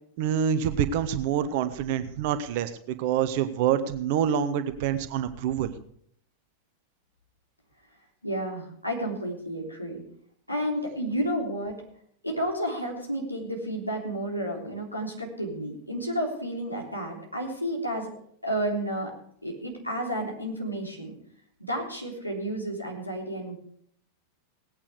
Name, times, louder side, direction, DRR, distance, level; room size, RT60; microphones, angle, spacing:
voice 1, 0.2-5.7, right 9 dB, 50° right, 11 dB, 1.1 m, -26 dB
voice 2, 8.2-10.0 10.5-11.7 12.2-18.1 18.4-19.1 19.4-21.1 21.6-23.5, right 1 dB, 85° left, -1 dB, 3.5 m, -31 dB
18.5 x 8.8 x 5.0 m, 0.67 s
figure-of-eight pair, 90°, 0 cm